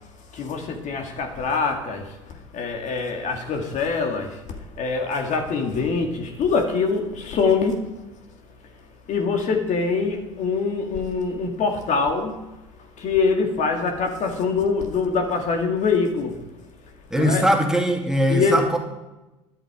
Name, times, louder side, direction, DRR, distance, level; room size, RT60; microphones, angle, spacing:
voice 1, 0.3-7.8 9.1-12.4 13.0-16.4 17.2-17.5 18.3-18.6, left 4 dB, 50° left, 3 dB, 2.3 m, -24 dB
voice 2, 17.1-18.8, equal, 5° right, 1 dB, 2.3 m, -20 dB
12.5 x 11.0 x 4.9 m, 1.0 s
hypercardioid pair, 75°, 16 cm